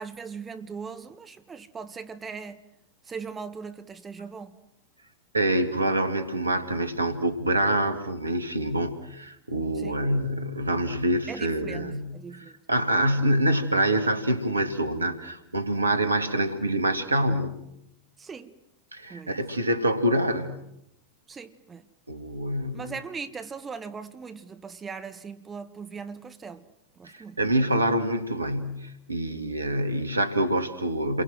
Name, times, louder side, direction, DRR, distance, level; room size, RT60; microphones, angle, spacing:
voice 1, 0.0-2.6 3.0-4.6 9.7-10.1 11.3-12.6 18.2-18.5 19.1-19.4 21.3-21.9 22.7-26.7 27.0-27.4, right 5 dB, 15° right, 1.4 m, -39 dB
voice 2, 5.3-12.1 12.7-17.6 18.9-20.5 22.1-22.8 27.0-31.2, right 1 dB, 80° right, 2.2 m, -26 dB
29.5 x 23.5 x 7.6 m
figure-of-eight pair, 90°, 0 cm